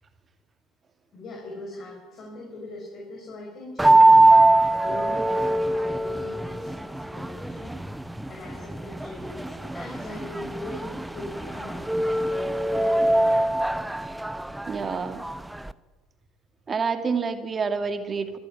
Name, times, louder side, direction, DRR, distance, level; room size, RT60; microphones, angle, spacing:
voice 1, 1.1-4.3 4.8-7.8 8.3-13.1, left 1 dB, 40° left, 0 dB, 5.9 m, -40 dB
sound 1, 3.8-15.7, right 2 dB, 5° right, 0.8 m, -22 dB
voice 2, 14.7-15.2 16.7-18.4, right 5 dB, 30° right, 8 dB, 2.3 m, -28 dB
25.0 x 13.0 x 9.5 m, 1.3 s
figure-of-eight pair, 60°, 0 cm